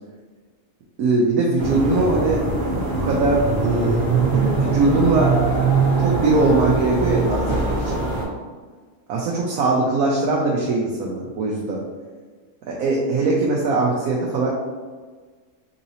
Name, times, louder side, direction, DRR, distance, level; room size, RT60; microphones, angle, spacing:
voice 1, 1.0-2.4 2.9-5.3 6.0-8.0 9.1-11.8 12.7-14.5, right 3 dB, 85° right, -3 dB, 1.1 m, -21 dB
sound 1, 1.6-8.2, right 4 dB, 45° right, 1.1 m, -22 dB
3.9 x 2.7 x 2.8 m, 1.5 s
omnidirectional pair, 1.5 m